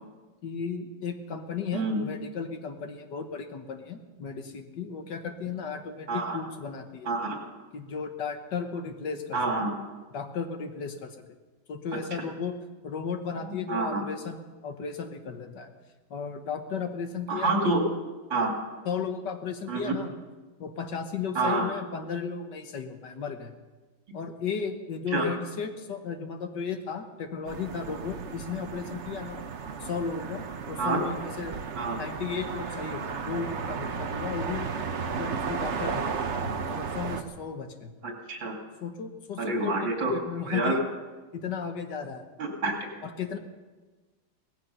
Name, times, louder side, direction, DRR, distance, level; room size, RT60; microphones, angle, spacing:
voice 1, 0.4-7.1 7.7-9.4 10.1-11.2 11.7-12.5 12.8-15.7 16.1-17.7 18.8-20.2 20.6-23.5 24.1-29.4 29.8-31.6 31.9-34.7 35.1-37.9 38.8-40.8 41.3-42.2 43.0-43.4, left 6 dB, 65° left, 6 dB, 1.8 m, -35 dB
voice 2, 6.1-6.4 7.0-7.4 9.3-9.7 13.3-14.0 17.3-17.8 18.3-18.5 19.7-19.9 21.3-21.7 25.1-25.2 30.8-31.0 31.8-32.0 38.0-38.5 39.4-40.1 40.4-40.8 42.4-42.7, right 3 dB, 80° right, 1 dB, 3.5 m, -28 dB
sound 1, 27.5-37.2, right 5 dB, 45° right, 1.0 m, -34 dB
18.0 x 15.0 x 5.5 m, 1.3 s
omnidirectional pair, 2.1 m